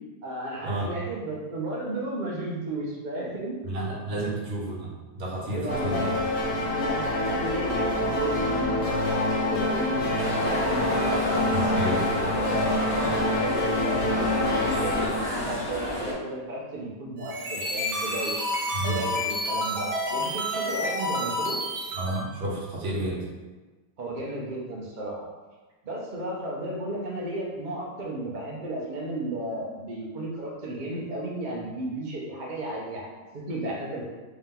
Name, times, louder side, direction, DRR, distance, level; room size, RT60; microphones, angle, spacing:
voice 1, 0.2-4.3 5.5-6.2 6.7-10.0 10.5-12.1 12.3-18.3 18.8-21.6 24.0-25.3 25.8-34.0, right 1 dB, 80° right, -4 dB, 0.4 m, -34 dB
voice 2, 3.6-6.1 11.5-12.0 18.7-19.0 22.0-23.2, right 1 dB, 45° right, -5 dB, 1.0 m, -31 dB
sound 1, 5.7-15.1, left 1 dB, 80° left, 0.5 m, -26 dB
sound 2, 10.1-16.1, left 1 dB, 40° left, 1.0 m, -31 dB
sound 3, 17.2-22.2, left 1 dB, 60° right, 1.3 m, -29 dB
3.4 x 2.8 x 3.7 m, 1.3 s
omnidirectional pair, 1.8 m